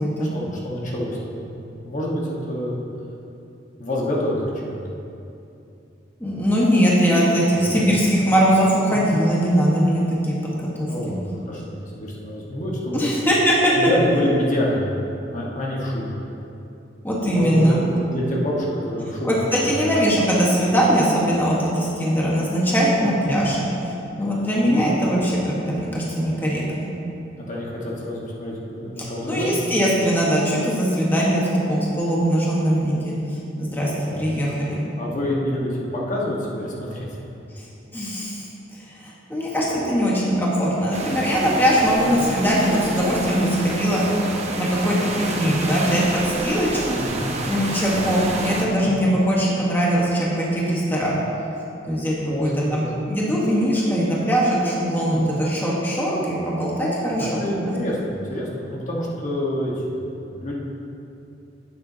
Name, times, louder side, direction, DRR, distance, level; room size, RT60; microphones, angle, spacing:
voice 1, 0.2-2.8 3.8-4.8 7.1-7.9 8.9-9.0 10.8-13.1 13.7-16.1 17.3-19.9 23.0-23.2 24.6-25.0 27.4-29.6 34.1-34.3 35.0-37.2 42.1-42.3 46.9-47.4 47.9-48.1 48.8-49.1 52.2-52.9 55.1-55.3 57.1-60.5, left 1 dB, 45° left, -4 dB, 1.4 m, -27 dB
voice 2, 6.2-10.3 10.8-10.9 12.9-13.7 17.0-17.8 19.2-23.6 24.2-26.9 29.0-33.1 33.6-34.8 37.9-38.4 38.7-44.0 44.5-47.0 47.5-51.2 51.9-57.4 57.6-57.7, equal, 10° left, -6 dB, 1.3 m, -21 dB
sound 1, 40.9-48.7, right 2 dB, 35° right, 0.9 m, -29 dB
11.5 x 8.9 x 2.8 m, 2.8 s
head